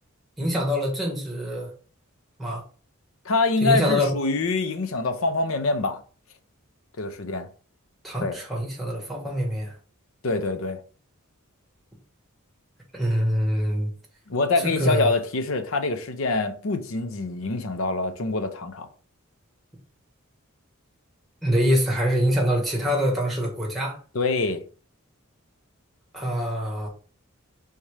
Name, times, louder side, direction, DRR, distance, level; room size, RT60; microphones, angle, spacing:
voice 1, 0.4-1.7 2.4-2.6 3.6-4.1 8.0-9.7 12.9-13.9 14.6-15.1 21.4-24.0 26.1-26.9, equal, ahead, 1.3 m, -24 dB
voice 2, 3.2-6.0 7.0-7.5 8.2-8.4 10.2-10.8 14.3-18.9 24.1-24.6, left 3 dB, 65° left, 0.6 m, -25 dB
4.2 x 3.6 x 3.2 m
head